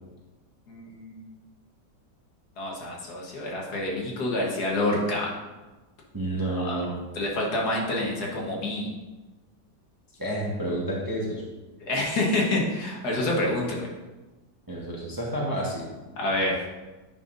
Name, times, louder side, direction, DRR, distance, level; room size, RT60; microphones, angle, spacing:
voice 1, 0.7-1.2 2.6-5.3 6.6-6.8 7.2-8.9 11.8-13.9 16.2-16.6, left 1 dB, 65° left, -2 dB, 1.7 m, -27 dB
voice 2, 6.1-6.9 10.2-11.4 14.7-15.9, right 1 dB, 15° right, -4 dB, 0.8 m, -29 dB
8.9 x 5.5 x 2.5 m, 1.2 s
omnidirectional pair, 1.9 m